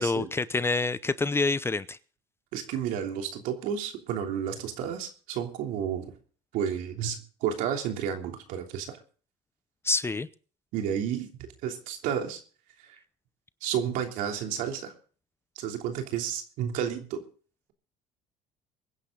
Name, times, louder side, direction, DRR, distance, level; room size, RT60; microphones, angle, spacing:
voice 1, 0.0-2.0 9.8-10.3, left 3 dB, 15° left, 0.7 m, -27 dB
voice 2, 2.5-6.2 6.5-9.0 10.7-11.3 11.6-12.4 12.8-13.0 13.6-14.9 15.5-17.2, right 8 dB, 75° right, 3.1 m, -31 dB
23.5 x 10.0 x 3.9 m
supercardioid pair, 95°, 14 cm